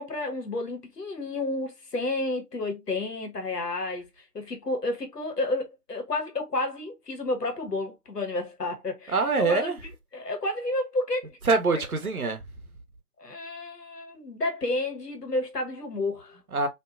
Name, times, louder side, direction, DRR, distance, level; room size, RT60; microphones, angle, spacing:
voice 1, 0.0-11.4 13.2-16.4, left 2 dB, 75° left, 1.0 m, -31 dB
voice 2, 9.1-9.8 11.5-12.4 16.5-16.7, right 4 dB, 65° right, 0.6 m, -24 dB
2.6 x 2.2 x 2.3 m
figure-of-eight pair, 165°, 48 cm